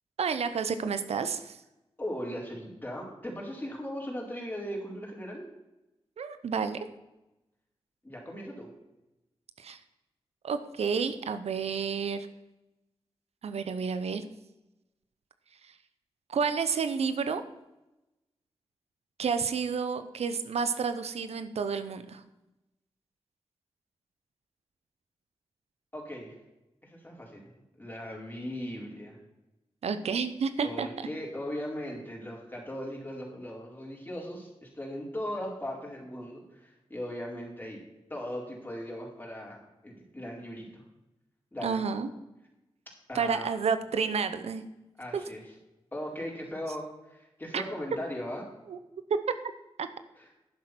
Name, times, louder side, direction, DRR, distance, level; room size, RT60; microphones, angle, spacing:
voice 1, 0.2-1.6 6.2-6.8 9.6-9.8 10.4-12.3 13.4-14.2 16.3-17.4 19.2-22.2 29.8-31.1 41.6-42.1 43.1-44.6 45.1-45.2 47.5-47.6 48.7-48.8 49.8-49.9, right 6 dB, 85° right, 10 dB, 0.7 m, -30 dB
voice 2, 2.0-5.4 8.0-8.7 25.9-26.4 26.8-27.5 27.8-29.2 30.6-37.8 38.1-40.8 41.5-41.8 43.1-43.5 45.0-45.4 45.9-48.5 50.2-50.3, equal, 20° left, -2 dB, 4.6 m, -38 dB
10.5 x 7.6 x 6.0 m, 0.96 s
cardioid pair, 55°, 11 cm